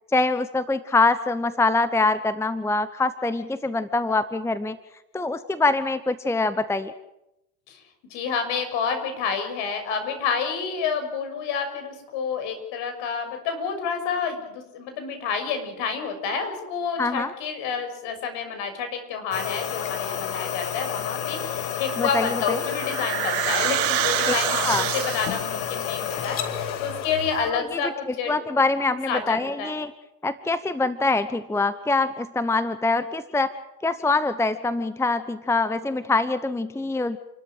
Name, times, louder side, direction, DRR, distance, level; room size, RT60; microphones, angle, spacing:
voice 1, 0.1-4.8 5.1-6.9 17.0-17.3 22.0-22.6 24.3-24.4 24.6-24.9 27.5-27.8 28.3-29.9 30.2-33.5 33.8-37.2, left 3 dB, 5° left, 13 dB, 1.0 m, -24 dB
voice 2, 8.1-28.3 29.1-29.8, left 6 dB, 60° left, 7 dB, 6.7 m, -29 dB
sound 1, 19.3-27.5, left 9 dB, 85° left, 2.4 m, -30 dB
sound 2, 22.1-25.6, right 17 dB, 75° right, 2.1 m, -27 dB
29.0 x 13.0 x 8.9 m, 0.90 s
supercardioid pair, 100°, 50 cm